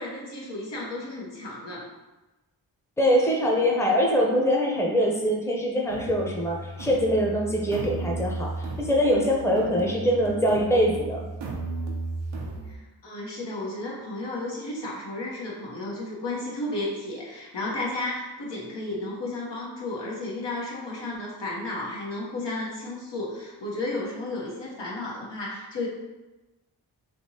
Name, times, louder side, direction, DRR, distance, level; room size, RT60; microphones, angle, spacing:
voice 1, 0.0-1.9 12.6-25.9, left 2 dB, 75° left, -4 dB, 1.1 m, -33 dB
voice 2, 3.0-11.2, equal, 5° left, -1 dB, 0.7 m, -23 dB
sound 1, 5.9-12.7, right 2 dB, 80° right, 0.7 m, -35 dB
3.3 x 2.8 x 2.8 m, 1.1 s
cardioid pair, 45°, 43 cm